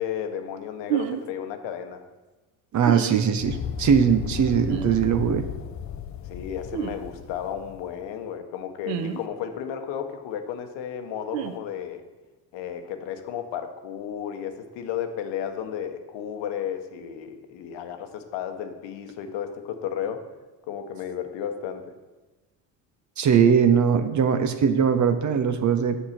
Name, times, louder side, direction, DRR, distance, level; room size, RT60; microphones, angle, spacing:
voice 1, 0.0-2.0 6.2-12.0 12.5-20.3 20.7-21.9, left 9 dB, 65° left, 7 dB, 1.1 m, -33 dB
sound 1, 0.9-1.2 2.8-3.2 4.7-4.9 6.7-7.0 8.9-9.2 11.3-11.5, right 10 dB, 75° right, 0.8 m, -28 dB
voice 2, 2.7-5.5 23.2-26.0, right 7 dB, 40° right, 10 dB, 0.8 m, -20 dB
sound 2, 3.4-7.9, left 8 dB, 40° left, 0.6 m, -35 dB
7.2 x 6.6 x 4.4 m, 1.2 s
hypercardioid pair, 65°, 47 cm